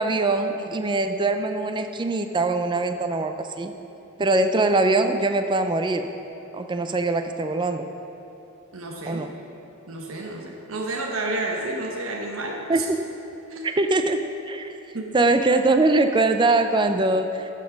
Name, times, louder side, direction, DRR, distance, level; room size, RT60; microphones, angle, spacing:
voice 1, 0.0-3.7 4.2-6.1 6.5-7.9 9.1-9.3 12.7-13.0 13.6-14.7 15.1-17.5, right 2 dB, 25° right, 7 dB, 0.4 m, -22 dB
voice 2, 8.7-9.2 9.9-12.9 13.5-13.7 14.9-15.2, right 2 dB, 80° right, 0 dB, 1.0 m, -30 dB
13.0 x 5.3 x 5.1 m, 2.9 s
head